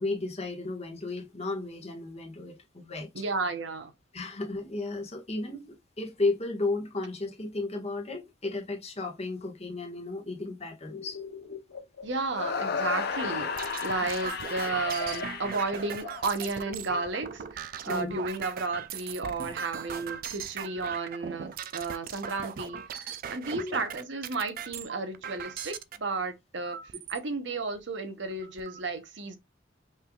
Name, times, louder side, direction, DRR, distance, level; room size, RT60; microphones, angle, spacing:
voice 1, 0.0-3.2 4.1-11.2 17.8-18.1 23.6-23.8, left 2 dB, 35° left, 1.4 m, -34 dB
voice 2, 3.1-3.9 12.0-26.8 27.1-29.4, right 3 dB, 65° right, 0.9 m, -33 dB
sound 1, 10.9-14.1 14.4-17.4, left 2 dB, 90° left, 1.7 m, -43 dB
sound 2, 12.3-16.5, left 5 dB, 55° left, 0.7 m, -33 dB
sound 3, 13.1-26.0 26.7-27.2 27.8-27.9 28.2-28.8, right 7 dB, 50° right, 0.4 m, -39 dB
5.4 x 3.4 x 2.3 m
head